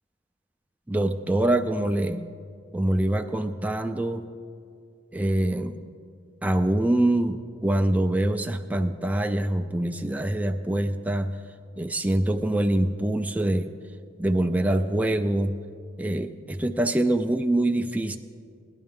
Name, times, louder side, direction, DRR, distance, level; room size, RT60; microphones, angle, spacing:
voice 1, 0.9-2.3 2.7-4.2 5.1-5.7 6.4-7.4 7.6-11.3 11.8-13.7 14.2-15.5 16.0-18.2, right 1 dB, 5° right, 6 dB, 0.3 m, -24 dB
18.0 x 11.0 x 3.7 m, 2.3 s
head